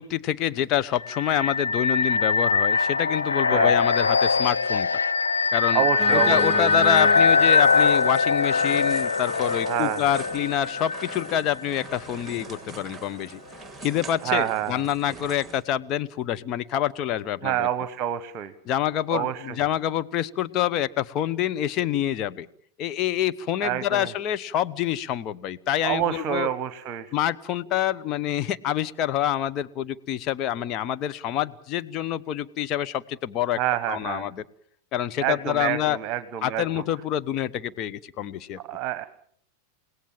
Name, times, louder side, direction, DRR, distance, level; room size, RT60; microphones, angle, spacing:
voice 1, 0.0-4.9 5.5-5.8 6.1-13.4 13.8-17.7 18.7-22.5 22.8-26.5 27.1-33.6 33.9-34.4 34.9-36.0 36.4-38.6, left 11 dB, 35° left, 11 dB, 1.0 m, -27 dB
sound 1, 1.0-11.8, left 5 dB, 75° left, 0.9 m, -22 dB
voice 2, 5.7-6.7 9.6-10.0 14.2-14.9 17.4-18.5 19.1-19.6 23.6-24.1 25.8-27.1 33.5-34.3 35.2-36.8 38.6-39.1, right 12 dB, 35° right, 12 dB, 1.4 m, -27 dB
sound 2, 6.0-15.6, right 3 dB, 10° right, 3.1 m, -38 dB
29.5 x 17.5 x 7.3 m, 0.65 s
figure-of-eight pair, 90°, 0 cm